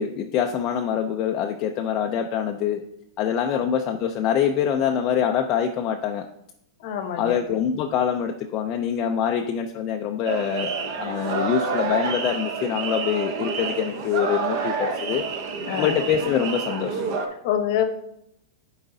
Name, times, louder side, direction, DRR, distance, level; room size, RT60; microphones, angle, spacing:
voice 1, 0.0-2.8 3.2-6.3 7.2-15.3 15.8-17.0, left 8 dB, 25° left, 3 dB, 0.3 m, -25 dB
voice 2, 6.8-7.4 15.7-16.0 17.4-17.8, left 10 dB, 40° left, 7 dB, 0.8 m, -26 dB
sound 1, 10.3-17.3, right 5 dB, 40° right, 0.7 m, -28 dB
10.5 x 4.7 x 2.6 m, 0.79 s
supercardioid pair, 165°, 3 cm